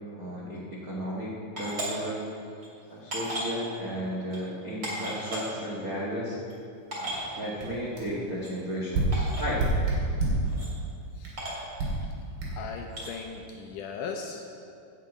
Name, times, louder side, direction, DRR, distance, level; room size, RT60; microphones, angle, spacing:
voice 1, 0.1-2.2 2.9-6.4 6.9-9.6, equal, 55° right, -6 dB, 0.9 m, -34 dB
sound 1, 1.6-1.9 2.6-2.7 3.1-3.5 4.3-4.4 4.8-5.4 6.2-6.3 6.5-6.6 6.9-7.2 8.4-8.5 9.1-9.4 10.4-10.7 11.4-11.6 12.9-13.1, right 1 dB, 30° right, 2.8 m, -34 dB
sound 2, 7.1-7.2 7.6-7.7 8.0-8.1 8.9-10.5 11.2-11.4 11.8-12.0 12.4-12.5, right 2 dB, 75° right, 4.0 m, -27 dB
voice 2, 12.5-14.6, left 5 dB, 75° left, 3 dB, 2.0 m, -38 dB
11.0 x 5.8 x 8.5 m, 2.6 s
omnidirectional pair, 4.2 m